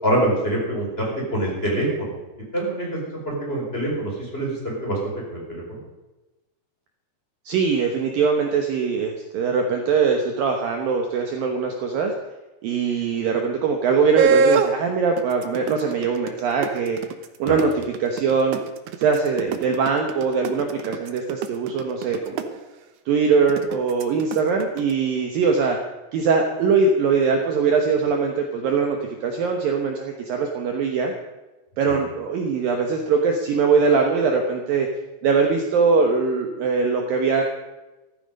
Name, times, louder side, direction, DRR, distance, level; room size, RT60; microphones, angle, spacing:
voice 1, 0.0-2.2 2.5-5.0 5.3-5.8 17.4-17.6, right 1 dB, 15° left, -3 dB, 4.6 m, -25 dB
voice 2, 7.5-12.1 12.6-17.0 17.4-18.6 19.0-22.6 23.1-25.8 26.1-31.1 31.8-34.9 35.2-37.4, right 5 dB, 65° right, 3 dB, 2.5 m, -22 dB
sound 1, 14.2-14.7 15.2-22.4 23.5-24.9, right 5 dB, 90° right, 1.7 m, -23 dB
15.0 x 14.0 x 5.3 m, 1.1 s
omnidirectional pair, 5.0 m